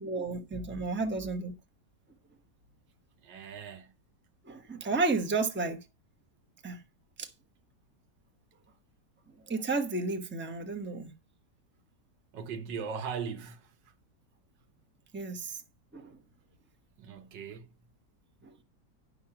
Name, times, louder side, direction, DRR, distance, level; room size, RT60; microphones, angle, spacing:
voice 1, 0.0-1.5 4.4-5.8 6.6-6.8 7.2-7.3 9.3-11.1 15.1-15.6 15.9-16.2 18.4-18.6, right 3 dB, 10° right, 0.9 m, -32 dB
voice 2, 3.2-3.9 12.3-13.6 17.0-17.7, right 6 dB, 80° right, 1.7 m, -39 dB
11.0 x 5.8 x 5.9 m
omnidirectional pair, 1.9 m